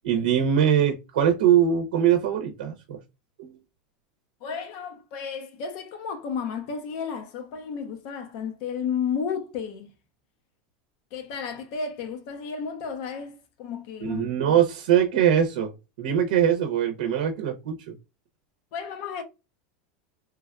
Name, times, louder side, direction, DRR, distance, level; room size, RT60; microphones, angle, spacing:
voice 1, 0.0-3.0 3.4-3.6 14.1-15.7 16.0-17.9, right 9 dB, 80° right, 0.6 m, -22 dB
voice 2, 4.4-9.9 11.1-14.3 18.7-19.2, left 6 dB, 60° left, 0.6 m, -32 dB
3.2 x 2.3 x 2.2 m
supercardioid pair, 135°, 4 cm